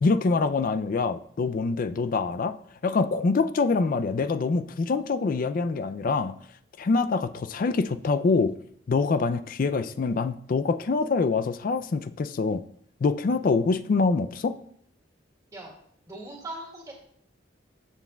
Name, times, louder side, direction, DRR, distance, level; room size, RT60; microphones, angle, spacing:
voice 1, 0.0-2.6 2.8-6.3 6.8-8.6 8.9-12.6 13.0-14.6, left 4 dB, 50° left, 0.4 m, -25 dB
voice 2, 16.1-16.9, right 2 dB, 20° right, 2.1 m, -39 dB
13.0 x 7.0 x 2.3 m
head